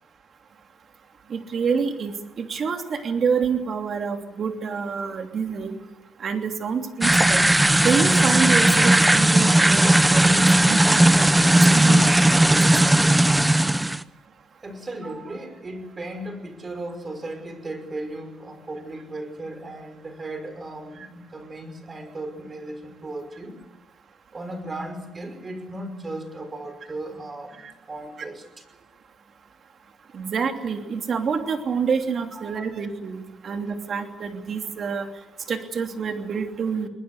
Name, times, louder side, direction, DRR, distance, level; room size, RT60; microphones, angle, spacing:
voice 1, 1.3-5.8 6.2-7.4 7.8-12.6 12.8-13.2 27.6-27.7 30.1-35.1 35.5-36.9, right 6 dB, 55° right, 5 dB, 3.0 m, -27 dB
sound 1, 7.0-14.0, right 1 dB, 10° right, 0.8 m, -17 dB
voice 2, 14.6-23.6 24.3-28.6 30.1-30.2 32.3-32.7, right 2 dB, 30° right, 8 dB, 5.5 m, -36 dB
22.0 x 20.0 x 8.4 m, 0.99 s
cardioid pair, 90°, 0 cm